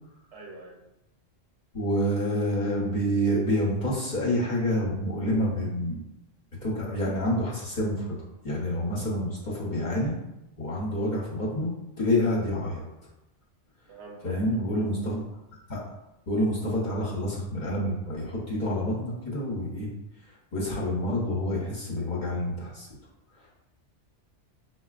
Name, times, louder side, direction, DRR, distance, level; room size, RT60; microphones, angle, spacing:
voice 1, 0.3-0.8 13.9-14.8, right 2 dB, 65° right, -2 dB, 1.0 m, -45 dB
voice 2, 1.7-6.0 6.6-8.1 8.4-10.2 10.6-12.9 14.2-15.2 15.7-15.8 16.3-19.9 20.5-22.9, equal, 45° left, -5 dB, 0.8 m, -28 dB
4.9 x 2.2 x 2.4 m, 0.90 s
omnidirectional pair, 1.3 m